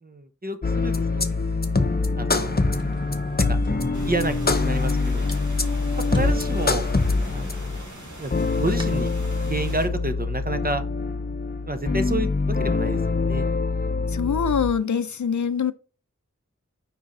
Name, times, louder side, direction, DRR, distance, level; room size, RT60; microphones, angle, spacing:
voice 1, 0.0-1.5 2.2-2.8 3.4-3.6 4.1-5.3 6.0-6.9 7.3-7.5 8.2-9.1 9.4-10.8 11.7-13.5, right 2 dB, 30° right, 0.8 m, -30 dB
sound 1, 0.6-14.7, left 3 dB, 30° left, 0.7 m, -24 dB
sound 2, 2.3-8.9, right 2 dB, 15° right, 1.5 m, -42 dB
sound 3, 3.9-9.9, right 2 dB, 80° right, 2.0 m, -43 dB
voice 2, 14.1-15.7, left 7 dB, 80° left, 0.5 m, -24 dB
5.4 x 4.7 x 3.7 m
wide cardioid pair, 50°, 29 cm